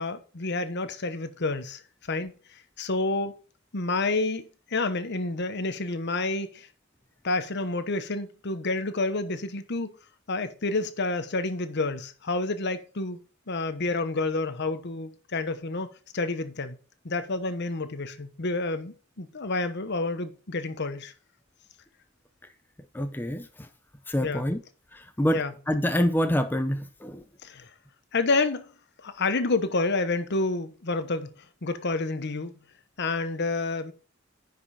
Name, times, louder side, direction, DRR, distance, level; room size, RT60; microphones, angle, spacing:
voice 1, 0.0-1.8 2.1-2.3 2.8-3.3 3.7-6.7 7.2-9.9 10.3-13.2 13.5-16.7 17.0-21.1 24.2-24.4 25.3-25.5 27.4-27.7 28.1-28.7 29.0-31.3 31.6-32.5 33.0-33.9, left 3 dB, 55° left, 1.0 m, -29 dB
voice 2, 22.9-23.7 24.1-24.6 24.9-27.2, equal, 10° left, 0.6 m, -27 dB
10.0 x 5.4 x 4.1 m
head